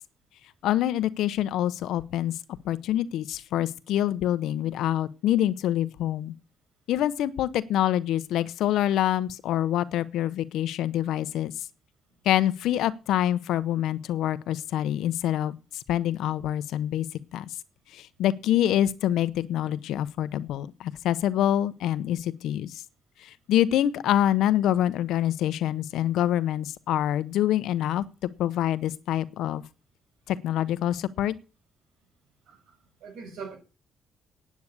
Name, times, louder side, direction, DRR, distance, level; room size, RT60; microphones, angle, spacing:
voice 1, 0.6-2.4 2.6-6.3 6.9-11.7 12.2-17.1 17.3-17.5 17.9-22.8 23.2-29.6 30.3-31.3, left 12 dB, 85° left, 0.8 m, -26 dB
voice 2, 32.5-33.6, right 5 dB, 80° right, 5.9 m, -42 dB
9.4 x 8.6 x 8.3 m
cardioid pair, 90°, 0 cm